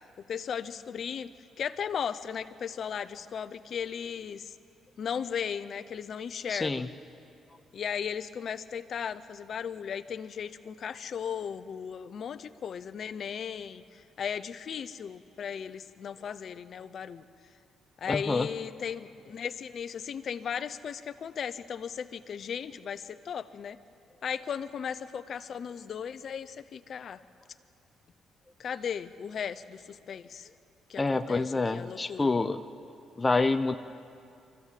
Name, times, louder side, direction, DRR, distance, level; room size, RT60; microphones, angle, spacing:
voice 1, 0.3-1.3 1.6-4.5 5.0-6.9 7.7-17.2 18.0-23.8 24.2-27.2 28.6-30.5 30.9-31.4 31.7-32.3, left 7 dB, 55° left, 12 dB, 0.8 m, -36 dB
voice 2, 6.5-6.9 18.1-18.5 31.0-32.6 33.2-33.7, left 3 dB, 20° left, 8 dB, 0.7 m, -27 dB
24.0 x 15.0 x 7.7 m, 2.5 s
cardioid pair, 90°, 0 cm